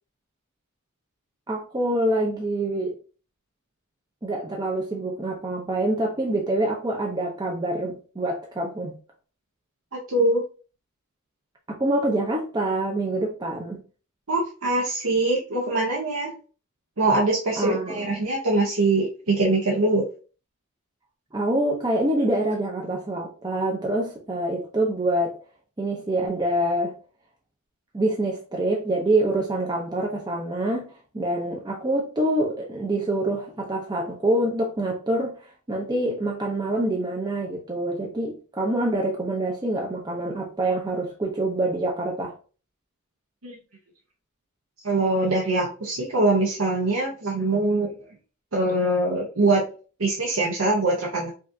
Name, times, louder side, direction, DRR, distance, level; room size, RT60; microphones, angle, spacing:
voice 1, 1.5-3.0 4.2-9.0 11.7-13.8 17.6-18.1 21.3-25.4 25.8-26.9 27.9-42.3, right 1 dB, 20° right, 0.6 m, -26 dB
voice 2, 9.9-10.4 14.3-16.3 17.0-20.0 43.4-43.6 44.8-47.9 48.5-49.6 50.0-51.3, right 2 dB, 70° right, 0.9 m, -23 dB
5.1 x 2.5 x 2.6 m
head